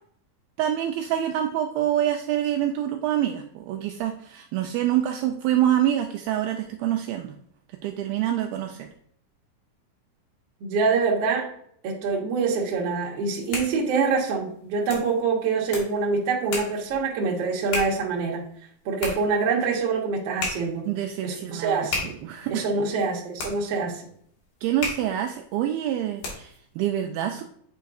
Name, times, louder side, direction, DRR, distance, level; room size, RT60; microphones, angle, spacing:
voice 1, 0.6-7.3 7.8-8.9 20.8-22.7 24.6-26.5 26.8-27.4, right 11 dB, 85° right, 4 dB, 2.2 m, -26 dB
voice 2, 10.6-11.5 11.8-18.4 18.8-20.9 21.2-22.1 22.5-24.0, right 4 dB, 65° right, -1 dB, 1.5 m, -25 dB
sound 1, 13.2-26.7, left 3 dB, 60° left, 3.0 m, -37 dB
8.1 x 4.7 x 2.5 m, 0.65 s
omnidirectional pair, 4.6 m